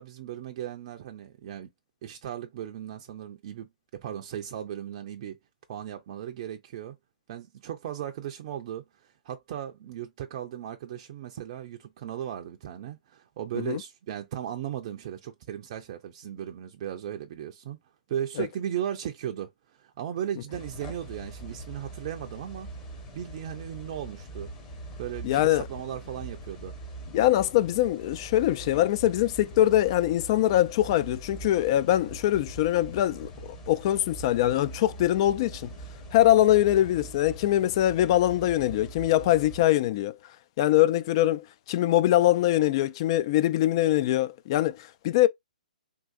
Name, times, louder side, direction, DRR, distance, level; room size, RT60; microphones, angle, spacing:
voice 1, 0.0-1.7 2.0-5.4 5.7-7.0 7.3-17.8 18.1-24.5 25.0-26.7, right 10 dB, 40° right, 0.5 m, -36 dB
sound 1, 20.5-39.7, right 2 dB, 20° left, 1.0 m, -42 dB
voice 2, 25.2-25.6 27.1-33.3 33.7-35.7 36.1-40.2 40.6-45.3, left 14 dB, 40° left, 0.3 m, -23 dB
3.7 x 2.5 x 2.3 m
figure-of-eight pair, 125°, 4 cm